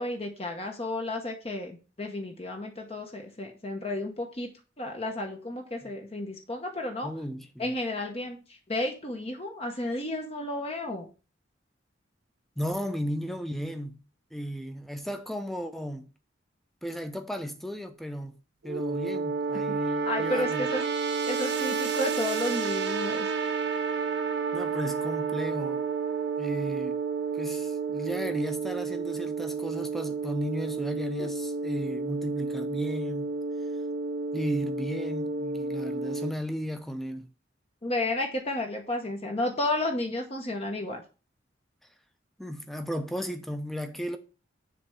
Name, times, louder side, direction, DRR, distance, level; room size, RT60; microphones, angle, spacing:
voice 1, 0.0-4.5 4.8-7.1 7.6-11.1 19.7-20.9 21.3-23.3 37.8-41.0, left 1 dB, 30° left, 0.9 m, -32 dB
voice 2, 7.0-7.6 12.6-14.0 14.3-16.1 16.8-18.4 18.6-20.7 24.5-25.8 26.4-27.0 27.3-33.3 34.3-37.3 42.4-44.2, equal, ahead, 0.7 m, -34 dB
sound 1, 18.6-36.3, right 5 dB, 60° right, 0.6 m, -31 dB
6.9 x 3.3 x 6.1 m
head